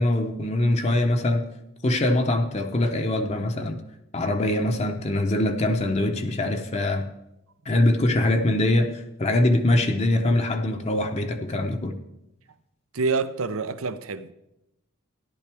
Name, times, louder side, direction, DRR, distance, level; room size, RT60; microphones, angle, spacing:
voice 1, 0.0-1.5 1.8-3.8 4.1-7.1 7.7-12.0, left 1 dB, 30° left, 0.7 m, -23 dB
voice 2, 12.9-14.3, right 4 dB, 80° right, 0.7 m, -27 dB
13.5 x 11.0 x 3.4 m
head